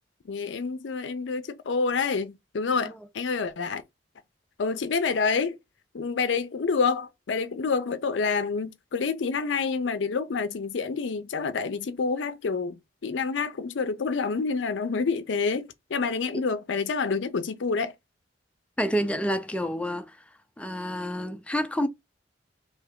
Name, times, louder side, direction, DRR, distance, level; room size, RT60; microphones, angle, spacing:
voice 1, 0.3-3.8 4.6-5.6 5.9-12.8 13.0-17.9, left 4 dB, 70° left, 0.5 m, -28 dB
voice 2, 18.8-20.2 20.6-21.9, equal, 5° left, 0.4 m, -28 dB
3.3 x 2.7 x 3.6 m
head